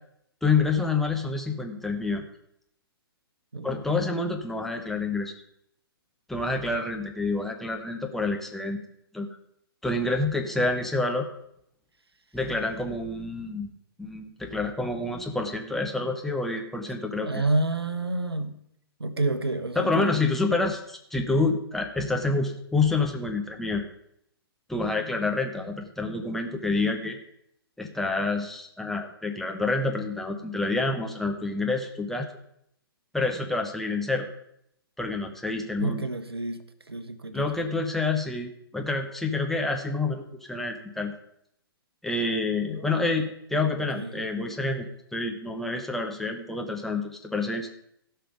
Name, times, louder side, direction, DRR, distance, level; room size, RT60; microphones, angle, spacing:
voice 1, 0.4-2.2 3.6-5.3 6.3-8.8 9.1-9.3 9.8-11.3 12.3-13.7 14.0-17.4 19.8-23.9 24.7-27.2 27.8-32.3 33.1-34.3 35.0-36.0 37.3-41.1 42.0-44.9 45.1-47.7, left 3 dB, ahead, 2 dB, 0.9 m, -28 dB
voice 2, 17.2-18.6 19.0-20.1 20.6-20.7 35.8-37.7 42.7-43.0 43.6-44.3, right 2 dB, 75° right, 11 dB, 1.1 m, -30 dB
16.0 x 5.6 x 5.1 m, 0.73 s
figure-of-eight pair, 125°, 13 cm